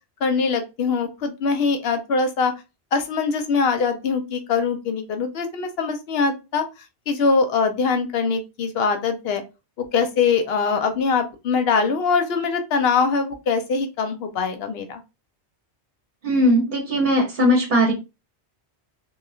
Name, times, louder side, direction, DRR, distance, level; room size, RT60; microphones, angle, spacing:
voice 1, 0.2-2.5 2.9-6.6 7.1-9.4 9.8-15.0, left 5 dB, 70° left, 7 dB, 0.8 m, -22 dB
voice 2, 16.2-17.9, equal, 50° right, -1 dB, 0.9 m, -19 dB
3.0 x 2.3 x 2.3 m, 0.27 s
omnidirectional pair, 1.1 m